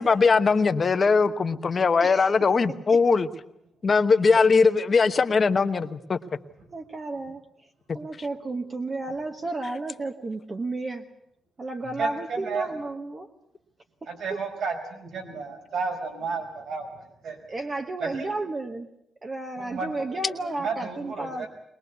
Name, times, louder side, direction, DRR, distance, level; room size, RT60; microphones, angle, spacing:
voice 1, 0.0-3.3 3.8-6.2, left 4 dB, 35° left, 9 dB, 1.0 m, -20 dB
voice 2, 2.0-2.4 4.3-4.7 6.7-7.7 7.9-11.1 11.6-13.3 14.3-14.4 17.5-18.9 19.2-21.5, right 2 dB, 30° right, 3 dB, 1.2 m, -32 dB
voice 3, 12.0-12.7 14.1-16.9 17.2-17.4 18.0-18.3 19.6-20.0 20.5-21.5, right 5 dB, 70° right, 4 dB, 5.0 m, -32 dB
21.5 x 21.0 x 8.2 m, 0.79 s
wide cardioid pair, 140°, 0 cm